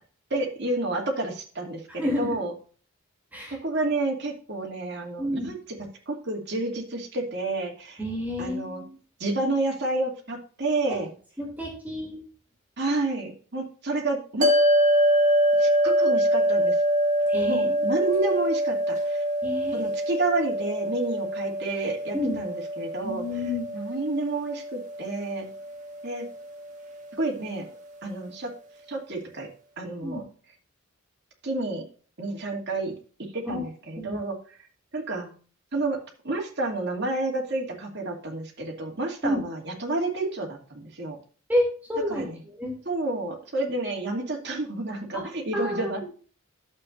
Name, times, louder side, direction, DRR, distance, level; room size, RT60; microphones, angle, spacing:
voice 1, 0.3-2.5 3.5-5.6 6.1-8.0 8.4-8.8 9.2-11.1 12.8-14.5 15.6-16.7 17.4-19.2 19.7-23.2 23.7-25.5 26.0-26.3 27.2-27.6 28.0-28.5 28.9-29.5 29.8-30.2 31.4-31.8 32.2-33.0 33.3-34.6 34.9-35.3 35.7-36.0 36.2-41.2 42.1-42.4 42.8-46.1, right 2 dB, 55° right, 0 dB, 2.7 m, -30 dB
voice 2, 1.9-2.3 3.3-3.6 5.2-5.5 8.0-9.0 10.9-11.0 11.4-12.2 17.3-18.0 19.4-19.9 22.1-22.4 23.0-23.6 30.0-30.2 33.4-33.6 34.0-34.2 39.2-39.4 41.5-42.7 45.1-45.2 45.5-46.1, left 1 dB, 10° right, -2 dB, 3.1 m, -30 dB
sound 1, 14.4-26.9, equal, 35° right, 1.7 m, -25 dB
12.0 x 7.8 x 2.7 m, 0.39 s
head